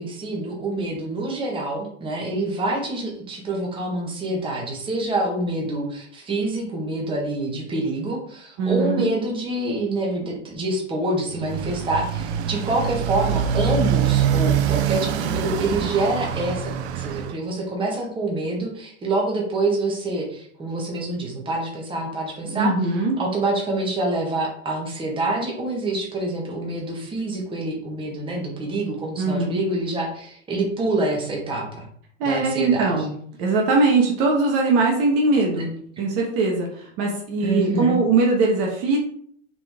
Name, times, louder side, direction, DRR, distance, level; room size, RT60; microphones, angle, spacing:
voice 1, 0.0-22.7 23.2-31.8 32.2-32.9 37.4-38.0, right 2 dB, 15° right, -2 dB, 1.7 m, -26 dB
voice 2, 8.6-9.1 22.4-23.1 29.2-29.6 32.2-33.1 33.4-35.7 36.0-39.0, right 3 dB, 40° right, 0 dB, 1.5 m, -21 dB
Motorcycle, 11.3-17.4, right 8 dB, 55° right, 0.7 m, -24 dB
6.8 x 3.9 x 3.7 m, 0.62 s
hypercardioid pair, 135°, 39 cm